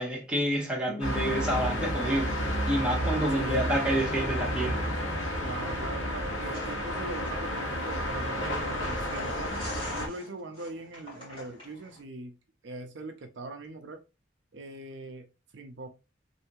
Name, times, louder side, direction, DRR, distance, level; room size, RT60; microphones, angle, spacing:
voice 1, 0.0-2.3 2.7-4.8, right 1 dB, 5° right, 1.1 m, -28 dB
sound 1, 0.9-10.6, left 2 dB, 45° left, 0.4 m, -47 dB
sound 2, 1.0-10.1, equal, 75° left, 1.1 m, -31 dB
voice 2, 3.3-4.0 5.4-9.7 10.0-12.3 12.6-14.0 14.5-15.3 15.5-15.9, right 2 dB, 65° right, 0.6 m, -41 dB
sound 3, 6.5-12.0, left 1 dB, 25° left, 1.9 m, -46 dB
3.3 x 2.7 x 2.9 m
head